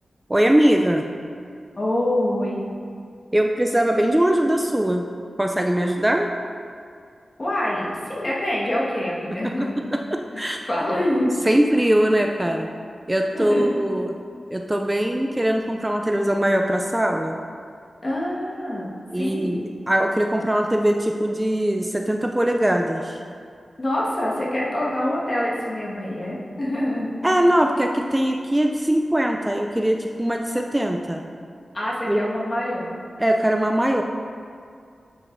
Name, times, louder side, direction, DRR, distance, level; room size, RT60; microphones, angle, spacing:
voice 1, 0.3-1.0 3.3-5.1 5.4-6.3 9.8-10.6 11.5-12.7 13.1-14.1 14.5-17.4 19.1-23.2 27.2-31.2 32.1-32.2 33.2-34.0, right 1 dB, 15° right, 3 dB, 0.3 m, -21 dB
voice 2, 1.8-2.6 7.4-9.7 10.3-11.3 11.7-11.8 13.3-13.7 18.0-19.6 23.8-27.1 31.7-32.9, left 1 dB, 40° left, -5 dB, 1.5 m, -25 dB
8.6 x 4.8 x 2.6 m, 2.3 s
cardioid pair, 50°, 0 cm